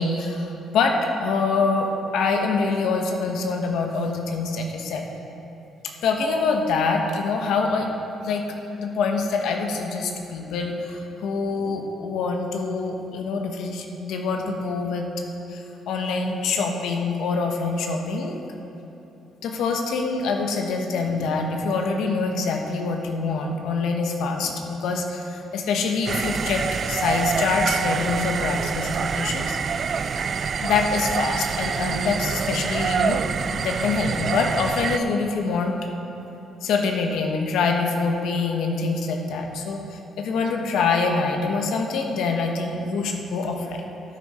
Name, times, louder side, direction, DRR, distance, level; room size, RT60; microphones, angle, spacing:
voice 1, 0.0-5.0 6.0-8.0 8.2-8.4 8.7-15.1 15.5-18.4 19.4-29.6 30.6-33.2 33.5-35.7 36.6-43.8, left 4 dB, 85° left, 3 dB, 1.1 m, -25 dB
sound 1, 26.1-35.0, right 6 dB, 45° right, 0.3 m, -26 dB
13.0 x 10.5 x 4.3 m, 3.0 s
cardioid pair, 130°, 0 cm